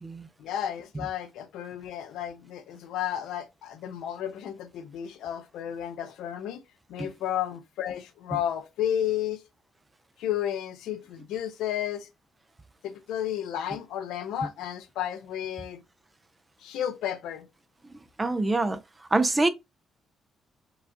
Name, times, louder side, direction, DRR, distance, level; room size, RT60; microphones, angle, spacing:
voice 1, 0.4-6.6 6.9-9.4 10.2-12.1 12.8-15.8 16.6-17.5, left 10 dB, 85° left, 0.6 m, -32 dB
voice 2, 18.2-18.8 19.1-19.5, right 2 dB, 20° right, 0.5 m, -25 dB
4.6 x 2.4 x 2.7 m
cardioid pair, 90°, 0 cm